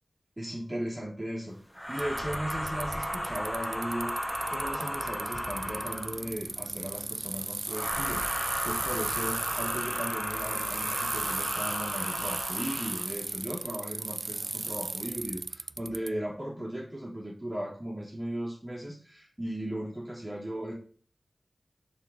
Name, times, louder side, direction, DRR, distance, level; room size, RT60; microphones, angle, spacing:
voice 1, 0.4-1.6 1.9-4.2 4.5-20.7, right 1 dB, 20° right, -4 dB, 3.0 m, -37 dB
sound 1, 1.7-6.3 7.7-13.1, equal, 5° left, 1.3 m, -34 dB
Bicycle, 2.0-16.1, right 3 dB, 55° right, 0.3 m, -36 dB
sound 2, 5.3-12.4, equal, 45° left, 1.3 m, -54 dB
7.3 x 4.2 x 6.2 m, 0.42 s
wide cardioid pair, 60°, 0 cm